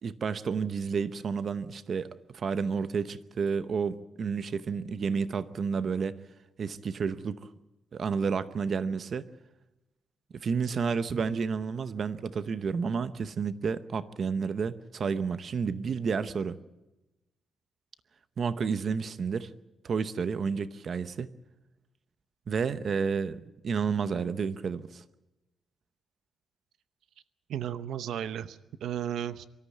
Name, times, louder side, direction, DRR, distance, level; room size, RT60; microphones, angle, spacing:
voice 1, 0.0-6.1 6.6-7.5 7.9-9.3 10.3-16.6 18.4-19.5 19.8-21.3 22.5-25.0, right 5 dB, 40° right, 13 dB, 0.8 m, -31 dB
voice 2, 27.5-29.5, right 10 dB, 85° right, 14 dB, 0.8 m, -34 dB
24.5 x 13.5 x 9.4 m, 1.0 s
wide cardioid pair, 170°, 0 cm